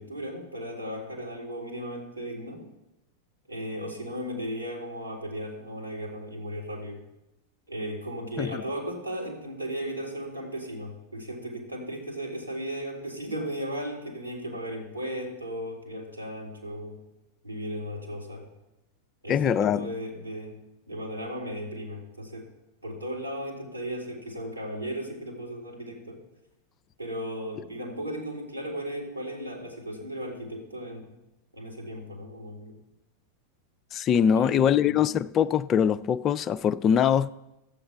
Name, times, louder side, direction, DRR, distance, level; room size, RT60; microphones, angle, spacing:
voice 1, 0.0-2.7 3.5-7.0 7.7-17.0 17.4-18.5 19.2-20.6 20.9-22.5 22.8-26.2 27.0-31.2 31.5-32.8 34.3-35.0, equal, 90° right, 2.6 m, -36 dB
voice 2, 19.3-19.9 33.9-37.3, left 8 dB, 30° left, 0.3 m, -23 dB
13.0 x 7.9 x 4.9 m
figure-of-eight pair, 90°, 0 cm